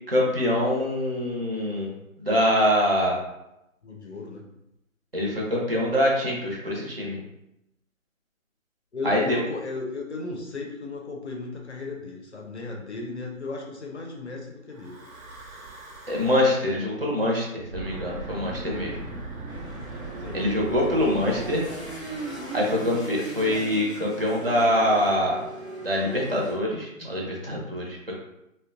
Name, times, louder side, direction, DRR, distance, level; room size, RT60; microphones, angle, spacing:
voice 1, 0.1-1.9 2.2-3.2 5.1-7.2 9.0-9.4 16.1-19.0 20.3-21.6 22.5-25.4 25.8-28.2, left 1 dB, 45° right, -3 dB, 0.6 m, -24 dB
voice 2, 3.8-4.4 8.9-15.0 20.2-20.5 20.9-21.0, left 3 dB, 55° left, 0 dB, 0.5 m, -35 dB
Breathing / Wind, 14.7-16.7 17.6-23.0, right 2 dB, 75° right, 0.8 m, -39 dB
sound 1, 19.5-26.5, right 2 dB, ahead, 0.5 m, -37 dB
2.6 x 2.1 x 2.5 m, 0.86 s
figure-of-eight pair, 175°, 41 cm